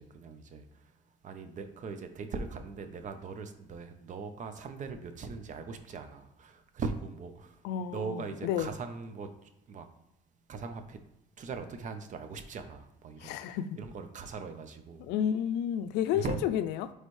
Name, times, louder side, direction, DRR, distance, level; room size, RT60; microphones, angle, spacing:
voice 1, 0.1-0.6 1.2-7.5 7.9-9.3 9.7-9.9 10.5-11.0 11.4-13.3 13.8-15.0 16.1-16.4, right 4 dB, 45° right, 8 dB, 0.8 m, -40 dB
voice 2, 7.6-8.7 13.2-13.8 15.0-16.9, left 9 dB, 90° left, 10 dB, 0.4 m, -31 dB
9.7 x 3.3 x 3.2 m, 0.86 s
cardioid pair, 110°, 17 cm